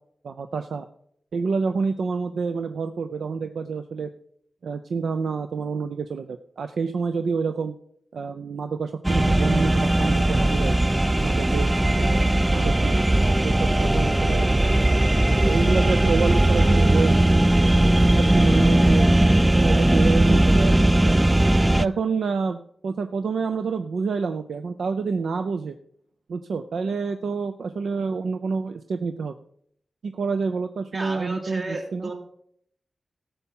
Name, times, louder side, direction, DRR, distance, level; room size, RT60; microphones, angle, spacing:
voice 1, 0.2-0.9 1.3-4.1 4.6-7.7 8.1-10.8 11.2-13.0 13.4-14.5 15.1-17.4 17.8-19.0 19.6-21.1 21.8-25.8 26.3-29.3 30.0-31.6 31.9-32.1, right 5 dB, 85° right, 8 dB, 0.5 m, -28 dB
sound 1, 9.0-21.9, right 1 dB, 15° right, 0.4 m, -18 dB
voice 2, 30.9-32.1, right 2 dB, 55° right, 1 dB, 2.6 m, -33 dB
13.0 x 7.0 x 5.5 m, 0.66 s
cardioid pair, 70°, 0 cm